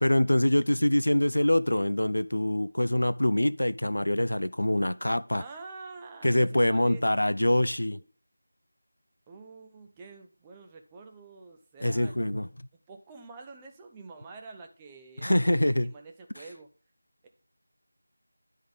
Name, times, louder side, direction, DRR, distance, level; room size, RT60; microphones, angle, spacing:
voice 1, 0.0-5.4 6.2-8.0 11.8-12.5 15.2-15.9, left 1 dB, 70° left, 0.4 m, -24 dB
voice 2, 5.3-7.0 9.3-12.5 12.9-16.7 17.2-17.3, right 4 dB, 10° right, 0.5 m, -47 dB
10.5 x 3.6 x 5.1 m
figure-of-eight pair, 170°, 0 cm